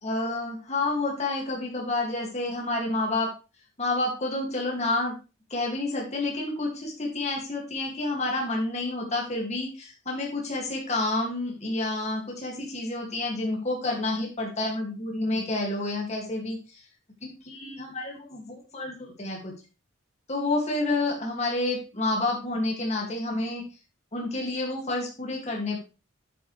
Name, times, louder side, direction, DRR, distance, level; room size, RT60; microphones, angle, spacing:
voice 1, 0.0-3.3 3.8-5.1 5.5-16.8 17.2-19.5 20.3-23.6 24.1-25.8, left 2 dB, 35° left, -1 dB, 2.2 m, -29 dB
8.7 x 7.8 x 3.3 m, 0.32 s
head